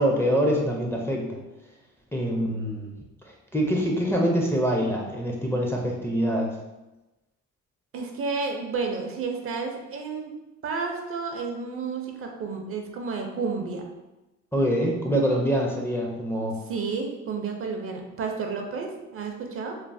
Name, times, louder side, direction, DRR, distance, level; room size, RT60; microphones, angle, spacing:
voice 1, 0.0-1.4 2.1-3.0 3.5-6.6 14.5-16.6, equal, 10° left, -2 dB, 0.4 m, -25 dB
voice 2, 7.9-10.4 10.6-13.9 16.7-19.8, right 4 dB, 45° right, 3 dB, 0.5 m, -31 dB
3.1 x 2.0 x 2.5 m, 1.0 s
cardioid pair, 90°, 30 cm